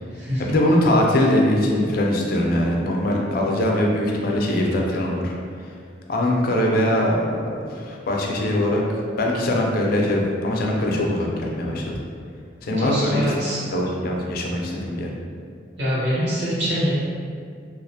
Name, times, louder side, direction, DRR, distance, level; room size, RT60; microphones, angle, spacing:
voice 1, 0.4-5.3 6.1-8.8 9.2-11.9 12.6-13.3 13.7-15.1, left 1 dB, 55° left, -1 dB, 0.3 m, -22 dB
voice 2, 12.8-13.6 15.8-16.9, equal, 80° right, -9 dB, 0.9 m, -24 dB
2.3 x 2.0 x 2.6 m, 2.2 s
head